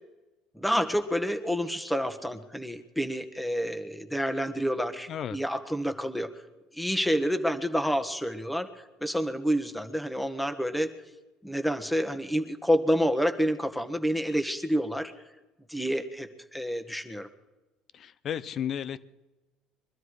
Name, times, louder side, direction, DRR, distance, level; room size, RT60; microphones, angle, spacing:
voice 1, 0.5-6.3 6.7-8.7 9.0-10.9 11.4-15.1 15.7-17.3, equal, 5° left, 1.5 m, -28 dB
voice 2, 17.9-19.0, left 9 dB, 50° left, 0.7 m, -33 dB
23.0 x 12.5 x 4.9 m
hypercardioid pair, 75°, 0 cm